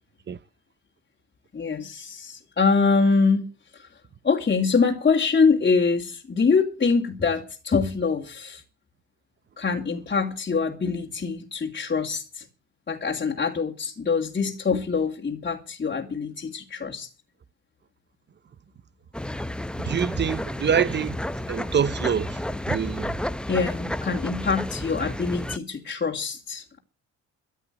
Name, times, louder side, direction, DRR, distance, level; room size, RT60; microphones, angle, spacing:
voice 1, 1.5-3.9 4.2-8.6 9.6-12.4 12.9-17.1 23.5-26.8, left 4 dB, 30° left, 2.6 m, -24 dB
sound 1, 19.1-25.6, left 1 dB, 5° left, 0.8 m, -31 dB
voice 2, 19.8-23.2, right 7 dB, 35° right, 0.7 m, -26 dB
14.0 x 9.1 x 8.0 m
cardioid pair, 90°, 30 cm